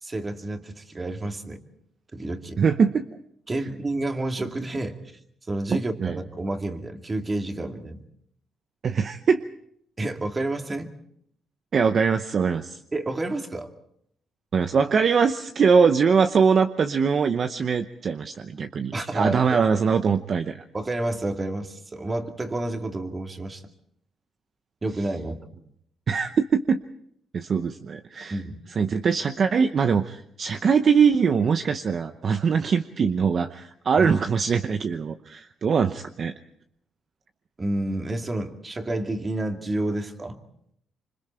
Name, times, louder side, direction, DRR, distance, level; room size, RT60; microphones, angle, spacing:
voice 1, 0.0-1.6 2.1-2.6 3.5-5.0 5.5-8.0 10.0-10.9 12.9-13.7 18.9-19.6 20.7-23.6 24.8-25.5 28.3-28.6 34.0-34.1 37.6-40.4, right 2 dB, 25° right, 4 dB, 2.4 m, -29 dB
voice 2, 2.6-3.0 5.7-6.2 8.8-9.4 11.7-12.8 14.5-20.6 26.1-26.8 27.3-28.4 28.8-36.3, right 6 dB, 50° right, 8 dB, 0.8 m, -22 dB
26.5 x 25.0 x 4.5 m, 0.70 s
cardioid pair, 90°, 0 cm